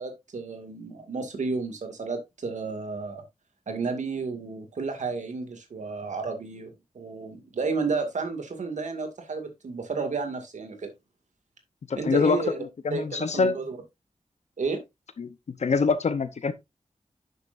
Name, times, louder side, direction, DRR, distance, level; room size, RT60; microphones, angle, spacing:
voice 1, 0.0-3.2 3.7-10.9 12.0-12.6 12.9-13.8 14.6-14.8, right 4 dB, 90° right, 2.2 m, -32 dB
voice 2, 11.9-12.4 12.8-13.6 15.2-15.3 15.6-16.5, left 4 dB, 70° left, 0.8 m, -24 dB
10.5 x 6.8 x 2.6 m
wide cardioid pair, 120°, 12 cm